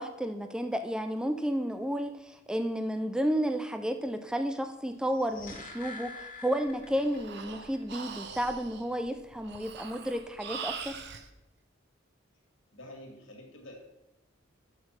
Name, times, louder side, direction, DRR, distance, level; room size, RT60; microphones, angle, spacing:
voice 1, 0.0-11.0, equal, 5° right, 7 dB, 0.4 m, -32 dB
sound 1, 5.0-7.4 7.7-7.8, left 3 dB, 40° left, 1.6 m, -45 dB
Breathing, 6.7-11.3, right 6 dB, 55° right, 0.6 m, -42 dB
voice 2, 12.7-13.7, left 1 dB, 70° left, 1 dB, 2.1 m, -48 dB
6.6 x 5.9 x 5.6 m, 0.93 s
head